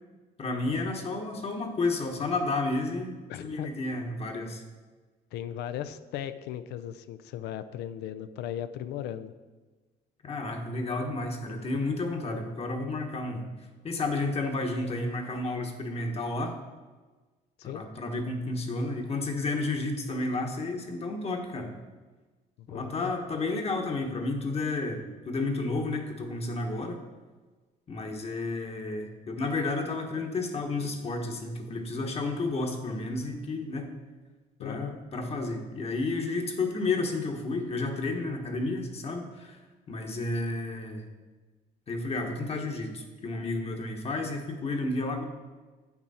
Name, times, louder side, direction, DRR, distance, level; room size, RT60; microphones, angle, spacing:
voice 1, 0.4-4.6 10.2-13.4 13.8-16.6 17.6-21.7 22.7-27.0 27.9-33.9 34.6-39.6 39.9-41.0 41.9-45.2, left 2 dB, 35° left, 3 dB, 1.2 m, -31 dB
voice 2, 3.3-3.7 5.3-9.3 17.6-17.8 22.6-23.1 34.6-35.0, left 10 dB, 80° left, 12 dB, 0.5 m, -37 dB
8.6 x 6.0 x 4.2 m, 1.3 s
cardioid pair, 110°, 17 cm